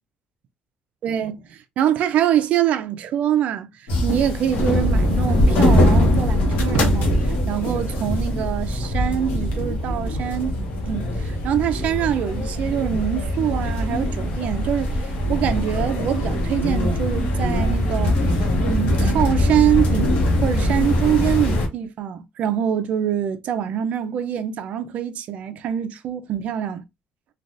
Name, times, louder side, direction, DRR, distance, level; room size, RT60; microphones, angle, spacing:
voice 1, 1.0-3.7 4.0-7.1 7.5-10.6 10.9-18.1 18.6-26.8, right 10 dB, 55° right, 0.4 m, -24 dB
sound 1, 3.9-21.7, left 1 dB, 80° left, 1.0 m, -21 dB
3.3 x 2.3 x 2.5 m
cardioid pair, 145°, 3 cm